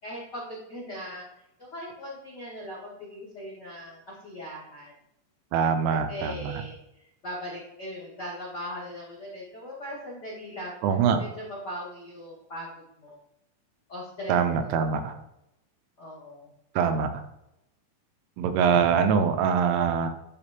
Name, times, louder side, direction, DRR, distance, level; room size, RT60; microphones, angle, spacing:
voice 1, 0.0-1.2 1.6-4.9 5.9-12.7 13.0-13.2 13.9-14.9 16.0-16.5, equal, 70° left, -7 dB, 0.9 m, -39 dB
voice 2, 5.5-6.6 10.8-11.2 14.3-15.1 16.8-17.2 18.4-20.1, right 6 dB, 80° right, 8 dB, 3.0 m, -24 dB
12.0 x 4.1 x 2.9 m, 0.84 s
omnidirectional pair, 6.0 m